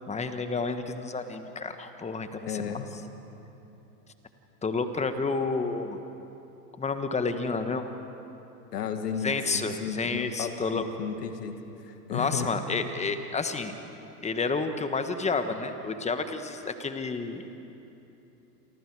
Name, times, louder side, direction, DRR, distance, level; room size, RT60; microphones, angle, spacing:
voice 1, 0.1-2.7 4.6-6.0 6.8-7.9 9.2-10.8 12.1-13.7 14.2-17.6, left 4 dB, 15° left, 8 dB, 1.4 m, -30 dB
voice 2, 2.4-2.9 8.7-12.5, left 7 dB, 75° left, 6 dB, 2.2 m, -34 dB
30.0 x 24.0 x 4.8 m, 3.0 s
hypercardioid pair, 105°, 47 cm